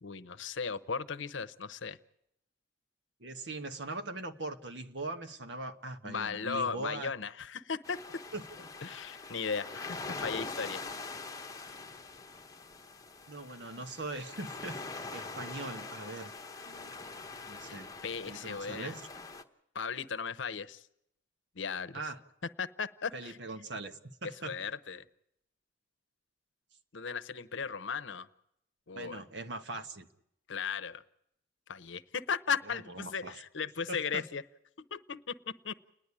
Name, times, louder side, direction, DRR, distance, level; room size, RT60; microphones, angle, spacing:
voice 1, 0.0-2.0 6.0-8.2 8.8-10.8 16.7-16.9 17.6-19.0 19.7-20.9 21.5-22.1 22.6-23.4 24.2-25.0 26.9-28.3 28.9-29.2 30.5-31.0 31.7-34.4 34.9-35.4 35.6-35.7, left 6 dB, 75° left, 14 dB, 0.8 m, -37 dB
voice 2, 3.2-7.1 8.3-8.4 13.3-14.8 15.1-16.3 17.5-17.9 18.3-19.0 21.9-22.2 23.1-24.5 28.9-30.1 32.7-33.3 33.9-34.2, right 2 dB, 60° right, 8 dB, 1.4 m, -41 dB
sound 1, 7.8-19.4, left 3 dB, 20° left, 1.0 m, -44 dB
30.0 x 10.5 x 9.7 m, 0.79 s
head